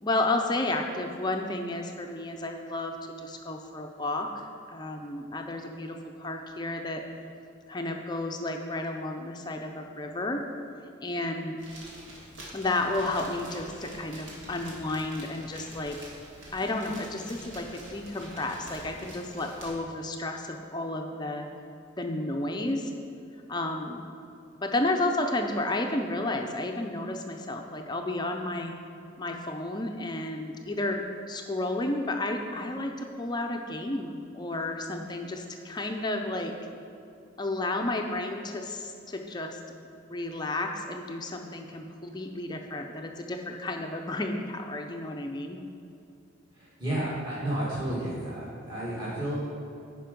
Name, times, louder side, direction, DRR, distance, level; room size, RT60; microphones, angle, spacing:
voice 1, 0.0-7.0 7.7-10.5 11.0-11.6 12.5-16.1 16.5-21.5 22.0-22.9 23.5-24.0 24.6-28.7 29.2-31.0 31.3-36.5 37.4-39.6 39.8-45.6, left 2 dB, 20° left, 3 dB, 0.5 m, -32 dB
sound 1, 11.6-19.7, right 1 dB, 70° right, 2.1 m, -46 dB
voice 2, 46.5-49.3, right 1 dB, 25° right, -11 dB, 1.9 m, -32 dB
10.0 x 5.1 x 5.2 m, 2.6 s
head